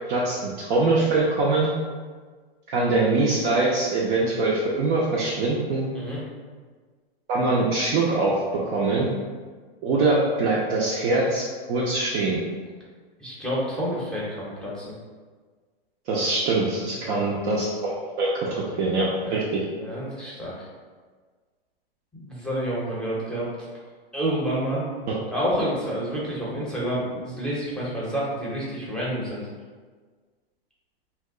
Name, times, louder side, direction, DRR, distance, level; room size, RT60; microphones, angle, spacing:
voice 1, 0.1-1.7 2.7-5.8 7.3-8.4 8.7-9.1 9.8-12.4 16.1-17.9 18.2-18.5 18.8-19.6 25.1-25.2, right 3 dB, 30° right, -5 dB, 0.4 m, -23 dB
voice 2, 13.2-14.9 17.0-17.2 19.2-19.4 19.8-20.5 22.2-23.5 24.1-24.8 25.3-29.4, equal, 5° left, -7 dB, 0.7 m, -29 dB
2.8 x 2.1 x 3.6 m, 1.5 s
hypercardioid pair, 120°, 31 cm